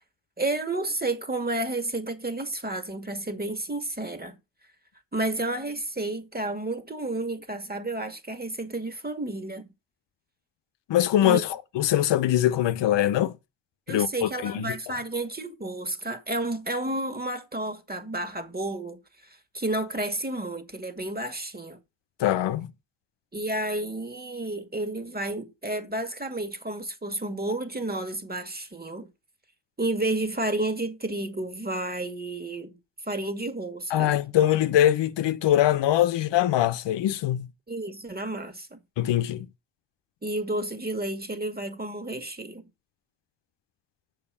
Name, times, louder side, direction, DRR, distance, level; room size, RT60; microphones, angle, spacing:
voice 1, 0.4-4.4 5.1-9.7 11.2-11.4 13.9-21.8 23.3-29.1 29.8-32.7 33.1-34.1 37.7-38.8 40.2-42.7, right 2 dB, 20° right, 2.3 m, -31 dB
voice 2, 10.9-11.5 11.7-13.3 13.9-14.8 22.2-22.7 33.9-37.5 39.0-39.5, left 12 dB, 80° left, 0.8 m, -23 dB
7.0 x 5.9 x 6.8 m
supercardioid pair, 45°, 42 cm